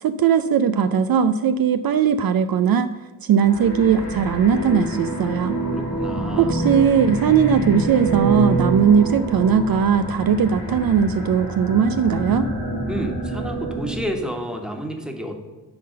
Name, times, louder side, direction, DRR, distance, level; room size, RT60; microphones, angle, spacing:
voice 1, 0.0-2.9 3.2-5.6 6.4-12.5, right 7 dB, 60° right, 10 dB, 0.5 m, -19 dB
sound 1, 3.4-14.2, right 1 dB, 85° left, 2.6 m, -27 dB
voice 2, 5.7-6.6 12.9-15.4, equal, ahead, 3 dB, 1.3 m, -30 dB
10.5 x 3.9 x 6.4 m, 1.2 s
cardioid pair, 80°, 39 cm